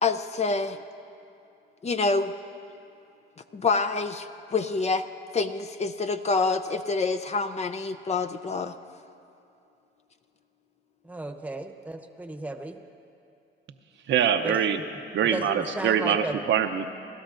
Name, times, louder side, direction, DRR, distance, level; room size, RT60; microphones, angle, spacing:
voice 1, 0.0-0.8 1.8-2.3 3.5-5.0 5.3-8.7, left 4 dB, 35° left, 9 dB, 0.5 m, -27 dB
voice 2, 11.0-12.8 14.4-14.6 15.2-16.4, right 2 dB, 5° right, 5 dB, 1.0 m, -34 dB
voice 3, 14.1-14.8 15.1-16.9, right 8 dB, 65° right, 7 dB, 0.7 m, -24 dB
30.0 x 12.5 x 2.6 m, 2.7 s
cardioid pair, 90°, 20 cm